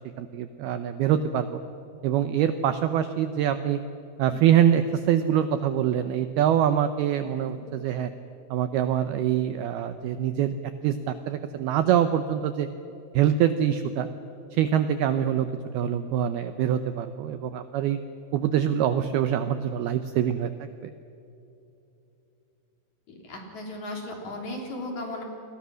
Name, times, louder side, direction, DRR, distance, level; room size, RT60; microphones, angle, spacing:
voice 1, 0.2-1.6 2.0-3.8 4.2-8.1 8.5-10.6 10.8-12.7 13.1-14.1 14.5-15.5 15.7-18.0 18.3-20.9, right 10 dB, 80° right, 10 dB, 2.3 m, -24 dB
voice 2, 23.1-25.2, left 1 dB, 40° left, 1 dB, 4.3 m, -36 dB
29.0 x 23.0 x 6.3 m, 2.9 s
omnidirectional pair, 5.4 m